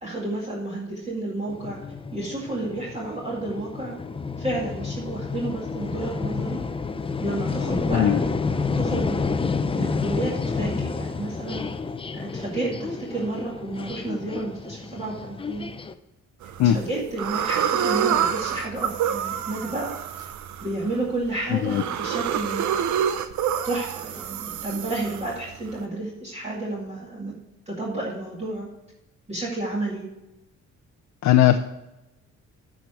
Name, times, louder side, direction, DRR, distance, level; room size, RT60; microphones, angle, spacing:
voice 1, 0.0-1.8 2.1-4.0 4.4-6.6 7.2-9.3 9.7-11.6 12.1-15.7 16.4-19.9 20.6-22.7 23.6-27.3 27.7-28.7 29.3-30.1, right 2 dB, 20° right, -4 dB, 2.2 m, -31 dB
sound 1, 1.5-15.9, left 4 dB, 20° left, 0.5 m, -30 dB
sound 2, 16.4-16.8 17.2-25.8, right 9 dB, 75° right, 0.7 m, -27 dB
voice 2, 31.2-31.6, left 12 dB, 65° left, 7 dB, 0.6 m, -18 dB
9.1 x 5.0 x 7.2 m, 0.95 s
cardioid pair, 90°, 30 cm